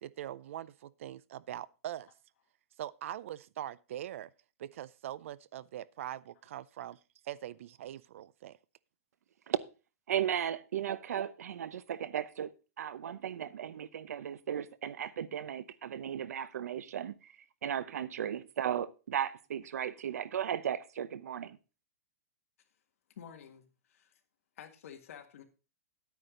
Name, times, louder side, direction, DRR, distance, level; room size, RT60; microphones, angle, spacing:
voice 1, 0.0-2.1 2.8-4.3 4.6-7.0 7.2-8.6, right 12 dB, 60° right, 0.4 m, -42 dB
voice 2, 10.1-12.5 12.8-17.3 17.6-21.6, right 9 dB, 85° right, 0.8 m, -35 dB
voice 3, 23.1-24.2 24.6-25.4, left 8 dB, 65° left, 1.8 m, -51 dB
9.7 x 9.3 x 3.8 m
supercardioid pair, 165°, 8 cm